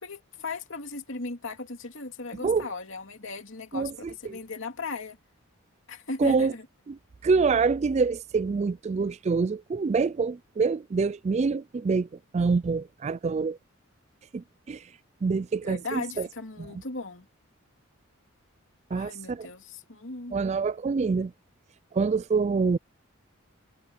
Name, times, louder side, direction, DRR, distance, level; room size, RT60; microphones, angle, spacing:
voice 1, 0.0-5.2 5.9-6.7 15.6-17.3 18.9-20.4, left 3 dB, 65° left, 2.9 m, -37 dB
voice 2, 3.7-4.4 6.2-6.5 6.9-12.1 12.3-13.6 14.3-14.8 15.2-16.3 18.9-19.5 20.3-21.3 21.9-22.8, right 4 dB, 30° right, 0.3 m, -26 dB
head